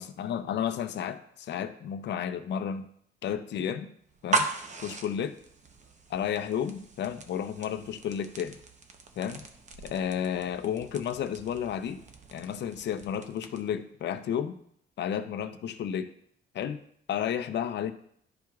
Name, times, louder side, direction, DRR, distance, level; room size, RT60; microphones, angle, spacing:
voice 1, 0.0-2.9 3.2-3.9 4.2-4.5 4.8-5.4 6.1-8.6 9.2-9.4 9.8-12.0 12.3-14.6 15.0-16.1 16.5-16.8 17.1-17.9, left 9 dB, 65° left, 8 dB, 0.6 m, -32 dB
sound 1, 4.1-13.8, right 3 dB, 35° right, 0.8 m, -38 dB
11.5 x 4.5 x 2.4 m, 0.66 s
cardioid pair, 90°, 20 cm